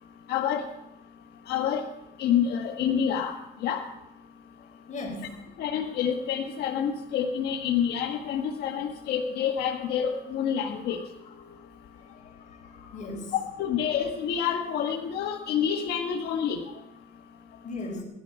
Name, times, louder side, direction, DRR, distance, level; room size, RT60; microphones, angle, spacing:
voice 1, 0.3-0.6 1.5-1.8 2.2-3.3 3.6-3.8 5.6-11.0 13.6-16.6, left 8 dB, 75° left, 2 dB, 1.3 m, -27 dB
voice 2, 4.9-5.3 10.9-11.1 12.1-13.3 17.6-18.0, left 2 dB, 45° left, 2 dB, 4.7 m, -38 dB
18.5 x 12.0 x 5.3 m, 0.91 s
cardioid pair, 110°, 17 cm